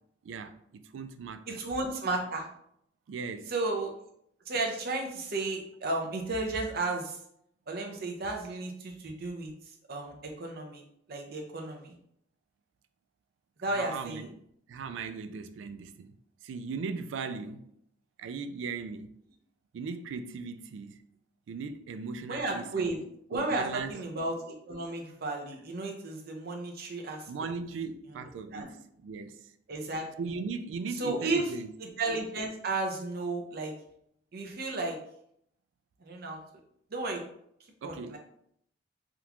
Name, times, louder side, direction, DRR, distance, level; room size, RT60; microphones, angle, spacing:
voice 1, 0.2-1.6 3.1-3.5 13.7-14.3 14.7-16.2 16.4-17.6 18.2-19.2 19.7-21.0 21.5-22.9 23.3-23.9 27.3-28.8 29.0-29.4 30.2-31.7 37.8-38.2, right 4 dB, 80° right, 0.3 m, -38 dB
voice 2, 1.5-2.5 3.5-3.9 4.5-7.2 7.7-10.8 11.1-11.9 13.6-14.3 22.3-23.0 23.3-27.5 28.1-28.2 28.5-28.7 29.7-30.1 31.0-31.5 31.8-33.7 34.3-35.0 36.0-36.4 36.9-37.2 37.8-38.2, right 2 dB, 55° right, 0.7 m, -33 dB
3.6 x 2.4 x 2.9 m
head